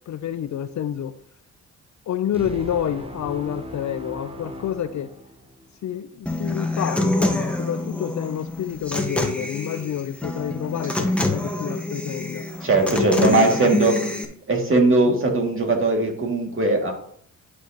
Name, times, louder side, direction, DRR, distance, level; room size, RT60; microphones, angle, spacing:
voice 1, 0.1-1.1 2.1-5.1 5.8-12.5 12.8-13.9 15.1-15.2, left 10 dB, 55° left, 12 dB, 0.5 m, -28 dB
sound 1, 2.3-5.8, equal, 15° right, 1.0 m, -37 dB
Human voice / Acoustic guitar, 6.3-14.2, left 1 dB, 5° left, 1.3 m, -26 dB
voice 2, 12.6-13.9 14.5-16.9, right 2 dB, 35° right, 1 dB, 2.3 m, -19 dB
11.0 x 4.9 x 2.9 m, 0.64 s
supercardioid pair, 60°, 35 cm